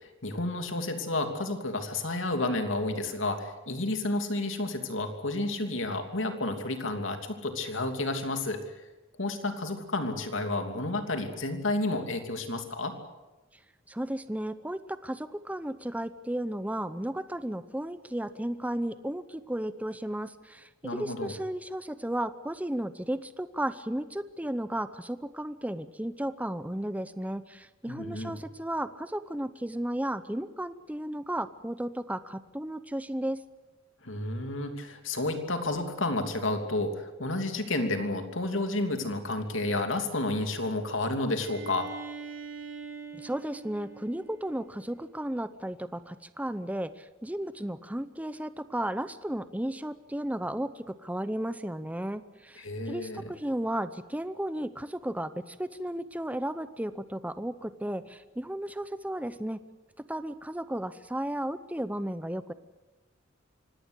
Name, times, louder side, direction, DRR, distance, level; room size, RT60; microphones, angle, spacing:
voice 1, 0.0-8.6 9.2-12.9 20.8-21.4 27.9-28.4 34.0-41.9 52.6-53.3, left 2 dB, 70° left, 6 dB, 2.9 m, -31 dB
voice 2, 13.9-33.4 43.2-59.6 60.1-62.5, right 1 dB, 5° right, 13 dB, 0.7 m, -34 dB
Bowed string instrument, 41.4-45.1, right 5 dB, 70° right, 6.4 m, -44 dB
25.0 x 18.0 x 8.2 m, 1.1 s
head